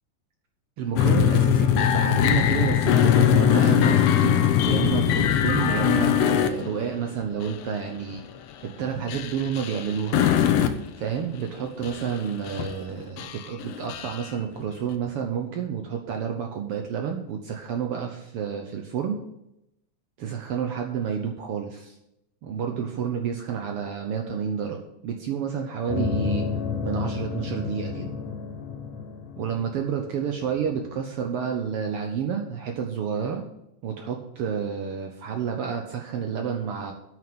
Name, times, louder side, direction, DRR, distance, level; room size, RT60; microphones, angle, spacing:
voice 1, 0.8-8.2 8.8-10.2 11.0-19.2 20.2-22.0 22.4-26.4 26.8-28.1 29.4-33.4 33.8-36.9, right 7 dB, 80° right, 3 dB, 1.3 m, -29 dB
sound 1, 1.0-7.0 7.4-7.6 8.0-8.2 9.1-10.9 11.3-11.4 11.8-12.1 12.5-12.9 13.2-14.3, left 10 dB, 80° left, 1.4 m, -21 dB
sound 2, 25.9-30.8, left 5 dB, 65° left, 2.5 m, -31 dB
9.0 x 6.4 x 7.7 m, 0.85 s
omnidirectional pair, 3.7 m